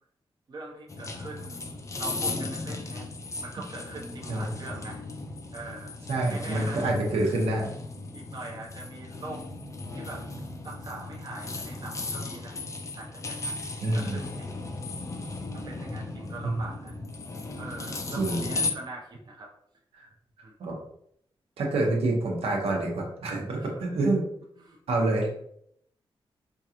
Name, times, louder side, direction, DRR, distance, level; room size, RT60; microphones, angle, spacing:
voice 1, 0.5-1.6 2.0-3.1 3.4-5.0 5.5-6.0 6.3-6.9 8.1-9.4 9.9-10.3 10.6-12.6 12.9-13.6 13.9-14.7 15.5-17.0 17.6-19.5 20.4-20.5 23.7-23.8 24.6-24.8, right 2 dB, 45° right, -1 dB, 0.7 m, -42 dB
sound 1, 0.9-18.7, left 3 dB, 30° left, 0.4 m, -36 dB
voice 2, 6.1-7.7 13.8-14.2 16.4-16.6 18.2-18.4 20.6-20.7 21.6-24.2 24.9-25.3, right 2 dB, 90° right, -1 dB, 1.0 m, -27 dB
4.5 x 2.5 x 2.9 m, 0.71 s
wide cardioid pair, 120°, 10 cm